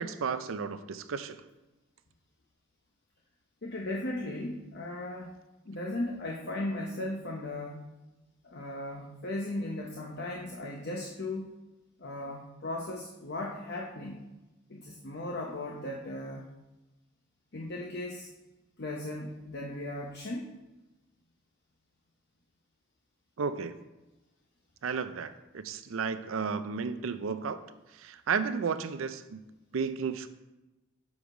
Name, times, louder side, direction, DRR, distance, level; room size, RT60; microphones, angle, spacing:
voice 1, 0.0-1.4 23.4-23.8 24.8-27.6 27.9-29.4 29.7-30.3, right 5 dB, 85° right, 12 dB, 0.5 m, -33 dB
voice 2, 3.6-5.4 5.6-7.9 8.4-11.5 12.0-14.2 14.7-16.4 17.5-18.3 18.8-20.5, left 1 dB, 55° left, -1 dB, 0.8 m, -37 dB
7.1 x 4.7 x 4.9 m, 1.0 s
head